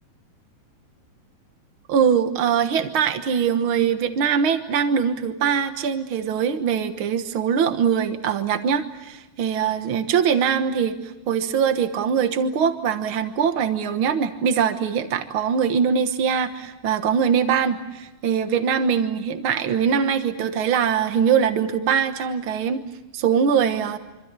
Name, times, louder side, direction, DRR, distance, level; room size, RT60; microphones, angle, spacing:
voice 1, 1.9-22.8 23.1-24.0, right 7 dB, 80° right, 8 dB, 1.1 m, -22 dB
26.5 x 25.5 x 7.5 m, 1.1 s
omnidirectional pair, 4.3 m